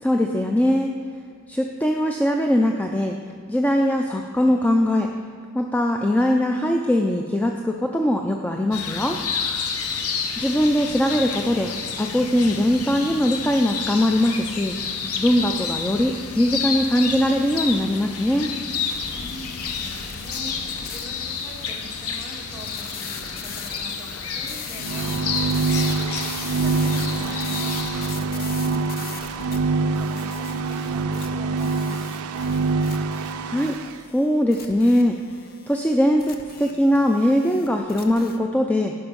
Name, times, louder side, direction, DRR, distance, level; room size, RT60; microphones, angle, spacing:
voice 1, 0.0-0.9 1.5-3.2 3.5-5.1 5.5-9.2 10.4-14.7 15.2-18.5 33.5-33.8 34.1-35.2 35.7-38.9, left 1 dB, 5° left, 2 dB, 0.3 m, -21 dB
sound 1, 8.7-28.2, left 5 dB, 75° left, 0.7 m, -30 dB
sound 2, 18.9-38.4, left 5 dB, 45° left, 0.6 m, -40 dB
voice 2, 19.1-32.5, equal, 15° right, -4 dB, 1.5 m, -43 dB
sound 3, 24.8-33.9, right 4 dB, 75° right, 0.4 m, -25 dB
11.5 x 5.4 x 5.2 m, 2.1 s
head